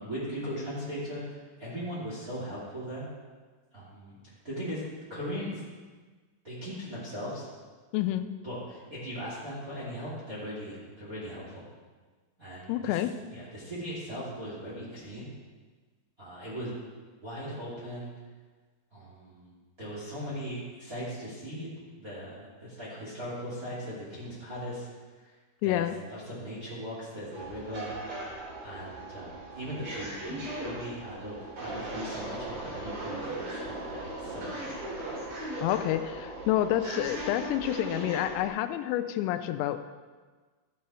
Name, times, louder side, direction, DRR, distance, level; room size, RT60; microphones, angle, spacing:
voice 1, 0.0-3.0 3.7-4.2 4.4-4.8 5.1-5.6 6.4-7.5 8.4-11.6 12.4-13.0 13.3-15.3 16.2-16.7 17.2-18.1 18.9-21.7 22.0-24.9 25.2-25.3 25.6-27.9 28.6-34.7 35.6-35.7, equal, 25° right, -7 dB, 2.2 m, -39 dB
voice 2, 7.9-8.3 12.7-13.1 25.6-26.0 35.6-39.8, left 13 dB, 90° left, 10 dB, 3.3 m, -28 dB
sound 1, 27.3-38.5, right 1 dB, 50° right, 5.0 m, -38 dB
13.5 x 8.5 x 4.4 m, 1.4 s
omnidirectional pair, 5.9 m